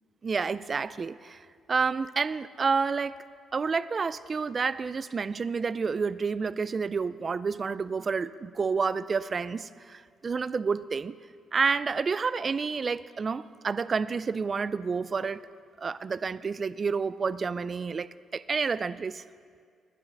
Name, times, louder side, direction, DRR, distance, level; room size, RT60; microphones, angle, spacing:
voice 1, 0.2-3.2 3.5-11.2 11.5-15.4 15.8-18.1 18.3-19.2, right 5 dB, 40° right, 17 dB, 0.3 m, -29 dB
11.5 x 9.7 x 6.5 m, 2.1 s
cardioid pair, 90°, 0 cm